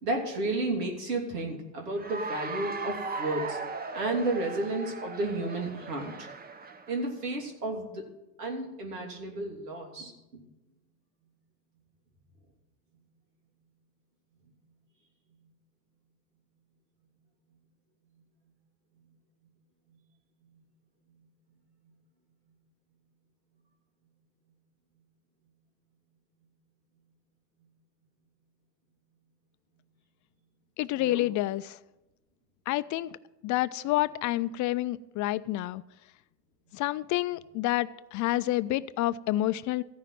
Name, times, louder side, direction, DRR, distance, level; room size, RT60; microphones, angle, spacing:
voice 1, 0.0-3.6 3.9-6.3 6.9-8.0 8.4-10.1 31.0-31.2, right 2 dB, 85° right, 1 dB, 3.1 m, -32 dB
Cheering / Applause, 1.9-7.1, right 4 dB, 20° right, 0.9 m, -38 dB
voice 2, 30.8-31.8 32.7-33.2 33.4-35.8 36.7-39.8, left 16 dB, 40° left, 16 dB, 0.5 m, -29 dB
14.5 x 5.8 x 9.2 m, 0.97 s
hypercardioid pair, 90°, 47 cm